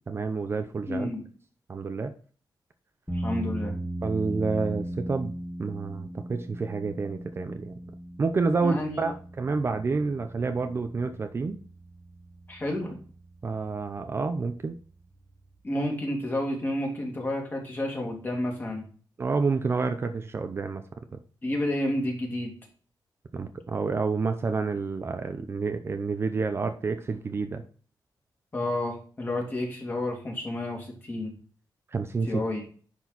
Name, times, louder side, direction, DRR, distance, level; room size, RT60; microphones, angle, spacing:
voice 1, 0.1-1.1 1.7-2.1 4.0-5.3 5.6-7.7 8.2-11.6 13.4-14.7 19.2-20.8 23.3-27.6 31.9-32.4, right 4 dB, 30° right, 7 dB, 0.6 m, -29 dB
voice 2, 0.9-1.2 3.1-3.7 8.6-9.1 12.5-13.0 15.6-18.9 21.4-22.5 28.5-31.3 32.2-32.6, left 1 dB, 25° left, 0 dB, 2.4 m, -30 dB
sound 1, 3.1-15.6, right 1 dB, 5° left, 1.4 m, -38 dB
10.0 x 4.5 x 4.1 m, 0.41 s
wide cardioid pair, 175°, 8 cm